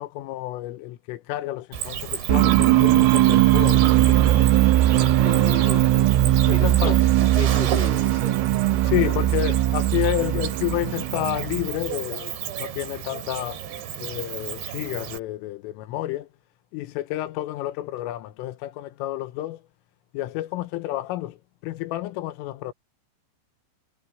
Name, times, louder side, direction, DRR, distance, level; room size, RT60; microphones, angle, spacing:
voice 1, 0.0-4.5 6.5-7.0 8.8-13.6 14.0-16.3 16.7-19.6 20.1-21.4 21.6-22.7, left 16 dB, 85° left, 3.7 m, -30 dB
Cricket, 1.7-15.2, right 9 dB, 65° right, 4.7 m, -33 dB
sound 1, 2.3-11.9, right 14 dB, 85° right, 3.6 m, -19 dB
voice 2, 5.2-6.1 6.5-8.5 9.0-9.2, left 2 dB, 25° right, 1.1 m, -35 dB
omnidirectional pair, 5.7 m